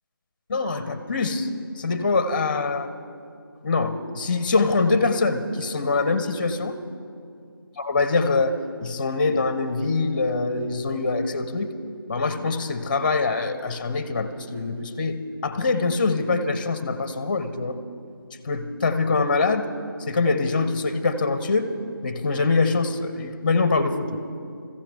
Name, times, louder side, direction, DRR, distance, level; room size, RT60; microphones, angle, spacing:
voice 1, 0.5-1.5 1.8-2.9 3.6-6.8 7.8-11.7 12.1-17.8 18.4-19.7 20.1-21.7 22.0-24.2, left 3 dB, 25° left, 11 dB, 0.6 m, -24 dB
22.0 x 14.5 x 3.5 m, 2.4 s
figure-of-eight pair, 165°, 12 cm